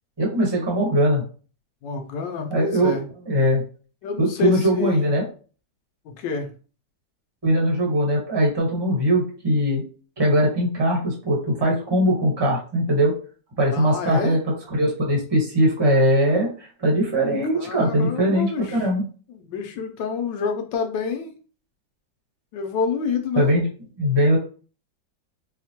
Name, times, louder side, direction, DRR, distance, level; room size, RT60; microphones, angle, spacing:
voice 1, 0.2-1.2 2.5-3.0 3.3-3.6 4.2-5.2 7.4-9.8 10.2-13.1 13.6-19.0 23.4-23.7 24.0-24.4, equal, 15° right, -2 dB, 1.0 m, -21 dB
voice 2, 1.8-3.0 4.0-5.1 6.0-6.5 13.7-14.4 17.5-18.9 19.3-21.3 22.5-23.5, left 6 dB, 80° left, 5 dB, 1.3 m, -28 dB
4.7 x 2.1 x 2.8 m, 0.39 s
omnidirectional pair, 2.0 m